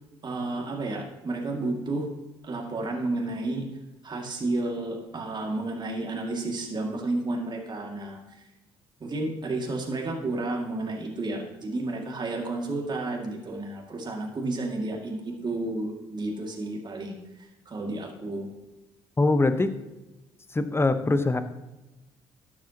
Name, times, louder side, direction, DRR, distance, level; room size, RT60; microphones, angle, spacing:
voice 1, 0.2-2.1 2.4-3.6 4.0-8.2 9.0-17.2 17.7-18.5, right 2 dB, 35° right, 1 dB, 2.3 m, -31 dB
voice 2, 19.2-19.7 20.5-21.4, left 2 dB, 20° left, 10 dB, 1.1 m, -22 dB
12.5 x 9.3 x 3.0 m, 1.0 s
hypercardioid pair, 50°, 12 cm